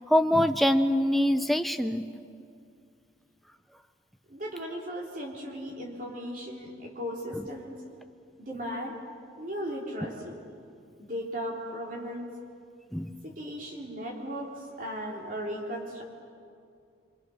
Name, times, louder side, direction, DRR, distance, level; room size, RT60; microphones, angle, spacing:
voice 1, 0.1-2.0 12.9-13.1, left 1 dB, ahead, 7 dB, 0.7 m, -24 dB
voice 2, 4.3-7.8 8.4-9.0 9.4-10.4 11.0-12.3 13.2-16.0, equal, 45° right, -1 dB, 3.4 m, -36 dB
25.5 x 25.5 x 6.4 m, 2.4 s
head